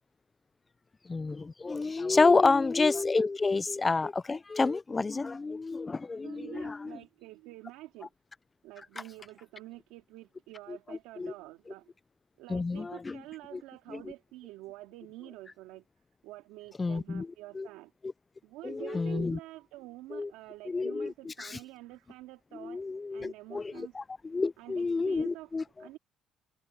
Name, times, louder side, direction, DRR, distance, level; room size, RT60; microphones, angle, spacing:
voice 1, 1.1-7.0 10.7-11.3 12.5-13.2 13.5-13.6 13.9-14.1 16.8-17.7 18.0-18.1 18.6-19.4 20.1-20.3 20.6-21.6 22.5-26.0, left 3 dB, 25° left, 0.4 m, -29 dB
voice 2, 6.2-8.1 8.6-11.9 12.4-15.8 16.2-17.9 18.4-22.8 23.1-24.0 24.6-25.5 25.8-26.0, right 17 dB, 85° right, 2.3 m, -47 dB
supercardioid pair, 80°, 0 cm